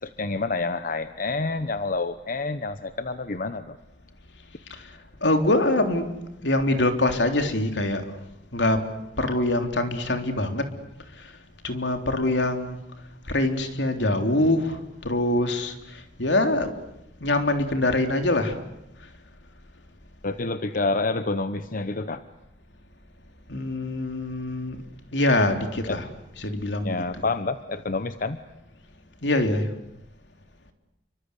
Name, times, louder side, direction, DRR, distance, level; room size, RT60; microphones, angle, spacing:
voice 1, 0.0-3.8 20.2-22.2 25.9-26.0 26.8-28.4, left 3 dB, 50° left, 11 dB, 1.0 m, -28 dB
voice 2, 5.2-8.0 8.5-8.9 9.2-10.7 11.6-12.8 13.3-16.7 17.2-18.6 23.5-24.8 25.1-26.1 26.4-27.0 29.2-29.7, left 1 dB, 75° left, 6 dB, 3.4 m, -24 dB
29.5 x 24.5 x 8.3 m, 0.85 s
head